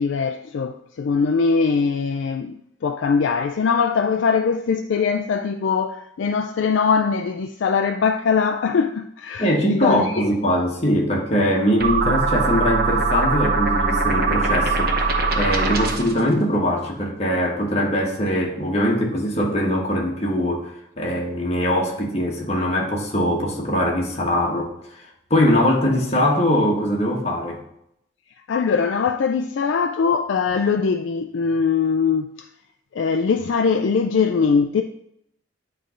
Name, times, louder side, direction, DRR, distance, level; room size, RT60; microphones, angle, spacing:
voice 1, 0.0-10.3 28.5-32.5 32.9-34.8, left 5 dB, 75° left, 0.4 m, -21 dB
voice 2, 9.4-14.9 15.3-24.7 25.3-27.6, equal, 35° left, 1.4 m, -21 dB
sound 1, 11.8-16.2, right 3 dB, 50° right, 0.8 m, -21 dB
8.9 x 3.4 x 5.0 m
head